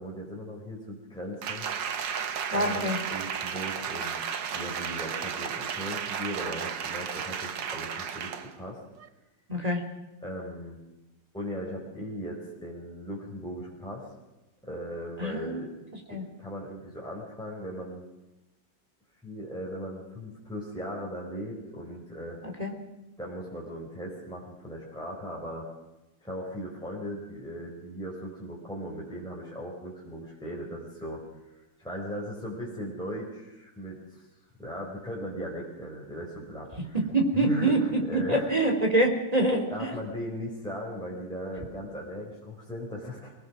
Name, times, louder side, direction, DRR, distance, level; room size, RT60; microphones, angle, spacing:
voice 1, 0.0-1.7 2.5-4.2 4.5-8.8 10.2-10.8 11.3-14.1 14.6-15.7 16.1-18.0 19.2-22.4 23.2-25.7 26.2-31.2 31.5-34.3 34.6-37.0 37.3-38.5 39.7-43.3, equal, ahead, -4 dB, 4.5 m, -38 dB
Applause, 1.4-8.6 9.0-9.1, right 7 dB, 75° right, 1.9 m, -33 dB
voice 2, 2.5-3.0 9.5-9.8 15.2-15.6 16.1-16.2 22.6-22.7 36.9-40.0, right 1 dB, 20° right, 2 dB, 3.1 m, -25 dB
24.5 x 19.0 x 6.3 m, 1.0 s
omnidirectional pair, 2.0 m